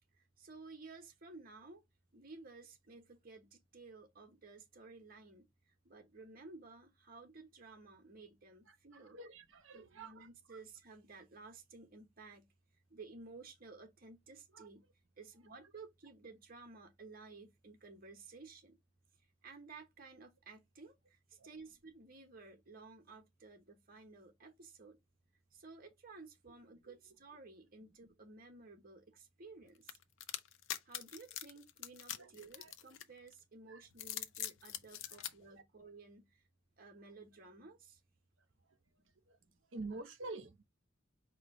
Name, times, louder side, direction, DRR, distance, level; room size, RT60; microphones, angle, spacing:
voice 1, 0.1-1.8 2.1-9.2 9.7-12.5 12.9-14.8 15.2-18.8 19.4-25.0 25.5-30.0 30.8-36.4 36.8-38.0, right 3 dB, 50° right, 1.1 m, -55 dB
voice 2, 9.1-10.3 14.5-14.7 32.1-32.3 32.6-32.7 33.7-33.8 39.7-40.6, right 3 dB, 70° right, 1.0 m, -46 dB
sound 1, 29.9-33.3 33.9-35.3, left 11 dB, 70° left, 0.6 m, -43 dB
4.8 x 2.3 x 4.7 m
head